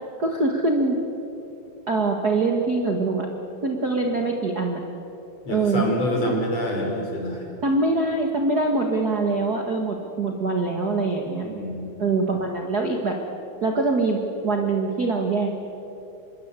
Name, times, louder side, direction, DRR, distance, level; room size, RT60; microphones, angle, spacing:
voice 1, 0.2-0.9 1.9-3.3 3.6-4.8 5.5-5.9 6.2-6.3 7.6-11.4 12.0-13.2 13.6-15.5, right 3 dB, 40° right, 2 dB, 1.3 m, -23 dB
voice 2, 5.5-7.5 11.4-12.0, equal, 40° left, 1 dB, 5.3 m, -27 dB
26.5 x 22.0 x 8.4 m, 2.9 s
omnidirectional pair, 4.4 m